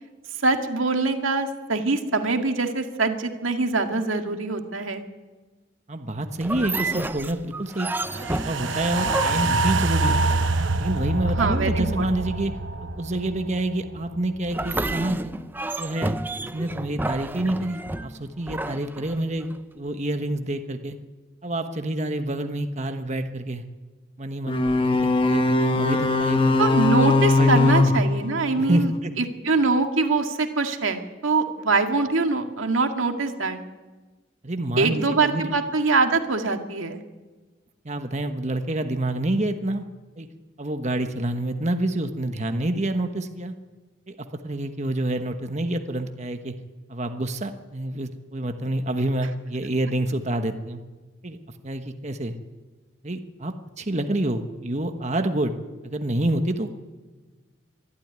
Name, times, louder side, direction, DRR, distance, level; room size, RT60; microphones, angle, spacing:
voice 1, 0.4-5.1 11.3-12.1 26.6-28.9 29.2-33.6 34.8-37.0, right 3 dB, 85° right, 5 dB, 2.1 m, -23 dB
voice 2, 5.9-7.9 8.2-10.4 10.8-12.5 12.8-15.3 15.8-16.2 16.4-21.0 21.4-23.6 24.2-26.7 27.4-27.7 28.6-29.1 34.4-35.5 37.8-39.8 40.2-40.3 40.6-43.5 44.1-44.2 44.4-46.5 46.9-50.8 51.2-51.4 51.6-52.4 53.0-55.5 55.8-56.7, right 1 dB, 35° right, 7 dB, 1.2 m, -27 dB
sound 1, 6.4-10.7 14.5-19.6, right 2 dB, 10° right, 0.6 m, -31 dB
sound 2, 8.1-14.5 14.8-14.9, right 3 dB, 70° right, 1.1 m, -26 dB
sound 3, 24.5-28.9, left 3 dB, 25° left, 1.2 m, -21 dB
24.0 x 13.0 x 9.5 m, 1.3 s
head